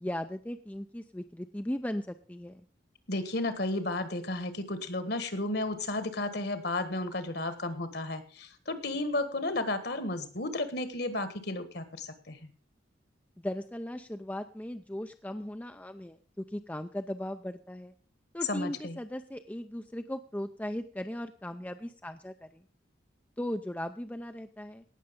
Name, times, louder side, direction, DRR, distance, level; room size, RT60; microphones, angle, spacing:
voice 1, 0.0-2.6 13.4-17.9 18.3-22.6 23.4-24.8, left 1 dB, 10° left, 7 dB, 0.5 m, -37 dB
voice 2, 3.1-12.5 18.5-19.0, left 2 dB, 55° left, 11 dB, 1.6 m, -33 dB
17.5 x 6.6 x 5.2 m, 0.37 s
head